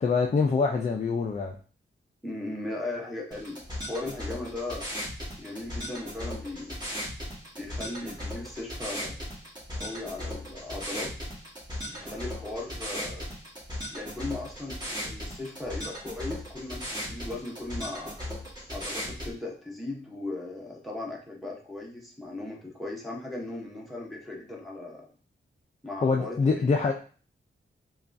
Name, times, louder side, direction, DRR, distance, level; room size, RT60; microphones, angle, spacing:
voice 1, 0.0-1.6 26.0-26.9, left 4 dB, 35° left, 2 dB, 0.4 m, -25 dB
voice 2, 2.2-4.9 5.4-7.0 7.6-9.2 9.8-11.1 11.9-13.2 13.9-18.3 18.7-25.1 25.8-26.8, left 2 dB, ahead, -3 dB, 0.9 m, -37 dB
sound 1, 3.3-19.3, equal, 20° right, 1.5 m, -37 dB
5.3 x 2.3 x 2.6 m, 0.40 s
wide cardioid pair, 125°, 21 cm